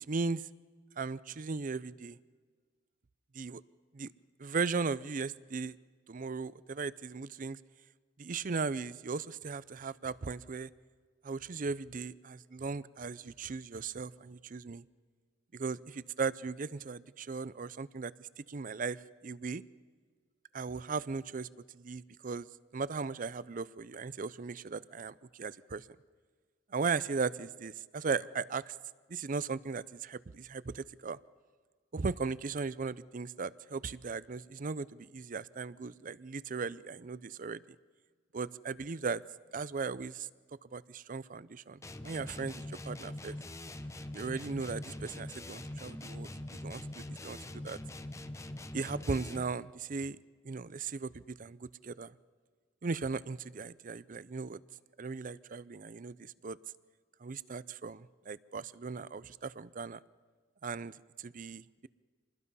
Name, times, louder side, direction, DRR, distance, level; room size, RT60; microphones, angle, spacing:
voice 1, 0.1-0.5 1.0-2.2 3.3-3.6 3.9-4.1 4.4-5.8 6.1-7.6 8.2-10.7 11.2-14.8 15.5-19.6 20.5-21.5 21.7-22.5 22.7-25.9 26.7-28.7 29.1-31.2 31.9-37.6 38.3-39.2 39.5-40.3 40.7-43.4 44.1-47.4 47.6-47.8 48.7-50.2 50.4-52.1 52.8-54.6 55.0-56.6 57.2-60.0 60.6-61.9, right 4 dB, 45° right, 18 dB, 0.5 m, -37 dB
sound 1, 41.8-49.6, left 1 dB, 15° left, 0.8 m, -43 dB
27.0 x 21.0 x 5.5 m, 1.5 s
head